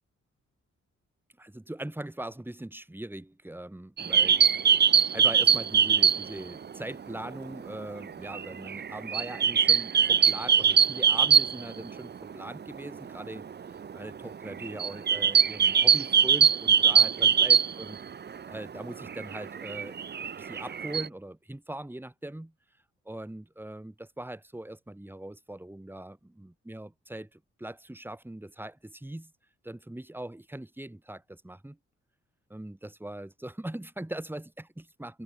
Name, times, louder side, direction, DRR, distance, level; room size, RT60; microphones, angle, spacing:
voice 1, 1.4-4.6 5.1-18.0 18.5-20.0 20.4-22.5 23.0-29.3 29.6-31.8 32.5-35.2, right 1 dB, 5° right, 3.3 m, -41 dB
sound 1, 4.0-6.5 6.7-6.8 7.1-12.0 12.3-12.4 12.6-12.9 13.4-18.4 18.8-21.1, right 7 dB, 35° right, 0.7 m, -22 dB
wide cardioid pair, 125°, 29 cm